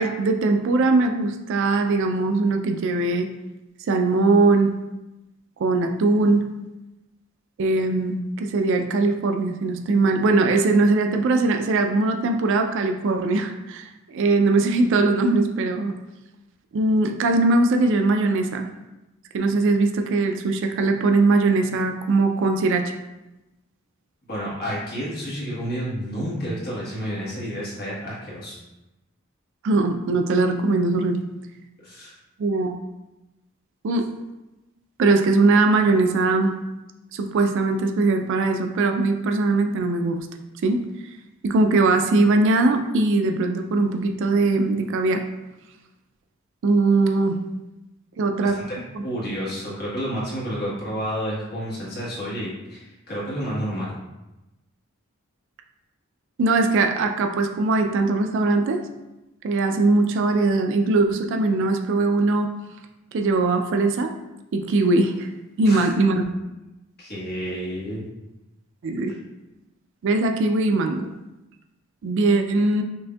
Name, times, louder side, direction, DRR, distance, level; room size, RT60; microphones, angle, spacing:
voice 1, 0.0-3.3 3.9-4.7 5.6-6.4 7.6-15.9 16.7-18.7 19.3-22.9 29.6-31.2 32.4-32.7 33.8-34.0 35.0-36.5 37.1-40.3 40.6-40.8 41.4-45.2 46.6-47.4 48.2-48.6 48.9-49.0 56.4-58.8 59.4-62.5 63.1-64.1 64.5-65.3 65.6-66.3 68.8-69.1 70.0-71.1 72.0-72.8, right 3 dB, 60° right, 6 dB, 0.4 m, -20 dB
voice 2, 24.3-28.6 31.8-32.1 48.4-48.8 49.0-54.0 65.6-65.9 67.0-68.1 69.1-69.2, equal, 50° left, -6 dB, 1.3 m, -30 dB
5.9 x 2.6 x 2.3 m, 1.0 s
head